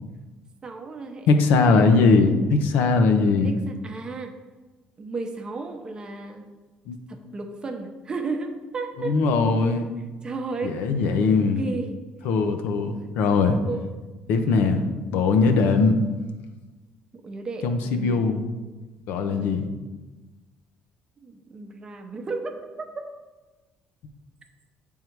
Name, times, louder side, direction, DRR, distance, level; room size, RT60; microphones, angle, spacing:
voice 1, 0.6-1.3 1.7-2.6 3.4-4.3 5.0-6.5 7.1-9.2 10.2-11.2 11.6-12.0 12.9-13.0 13.3-13.8 17.2-18.3 19.2-19.7 21.2-23.0, right 3 dB, 30° right, 5 dB, 0.7 m, -34 dB
voice 2, 1.3-3.5 6.9-7.0 9.0-9.9 10.6-11.6 12.2-13.6 14.3-14.8 15.1-16.0 17.6-18.4 19.1-19.6, left 4 dB, 80° left, 6 dB, 0.7 m, -20 dB
7.8 x 3.7 x 4.6 m, 1.2 s
cardioid pair, 130°, 3 cm